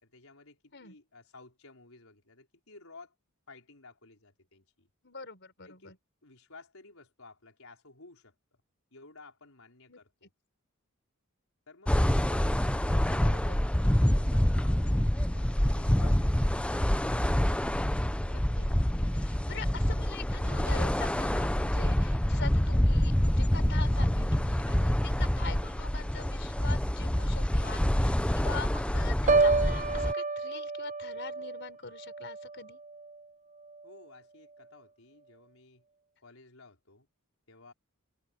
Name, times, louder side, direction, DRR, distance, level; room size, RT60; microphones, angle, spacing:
voice 1, 0.0-3.1 3.5-4.9 5.6-8.3 8.9-10.3 11.7-16.7 33.8-35.8 36.2-37.1 37.5-37.7, left 3 dB, 80° left, 4.8 m, -54 dB
voice 2, 5.0-6.0 9.9-10.0 12.9-13.6 18.3-32.8, left 5 dB, 60° left, 4.7 m, -44 dB
sound 1, 11.9-30.1, equal, 5° left, 0.6 m, -27 dB
Piano, 29.3-33.2 33.6-34.0, right 3 dB, 35° right, 0.6 m, -29 dB
head